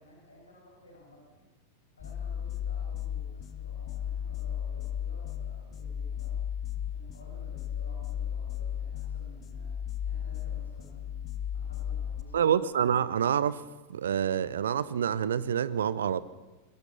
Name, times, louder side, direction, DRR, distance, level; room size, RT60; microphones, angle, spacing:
voice 1, 0.0-1.4 2.0-6.4 6.9-9.7 10.0-11.2 11.5-12.6, equal, 75° left, 7.0 m, -54 dB
sound 1, 2.0-12.2, left 9 dB, 30° left, 1.8 m, -35 dB
voice 2, 12.3-13.6 13.9-16.2, right 8 dB, 65° right, 0.9 m, -27 dB
23.0 x 21.0 x 7.0 m
figure-of-eight pair, 90°, 0 cm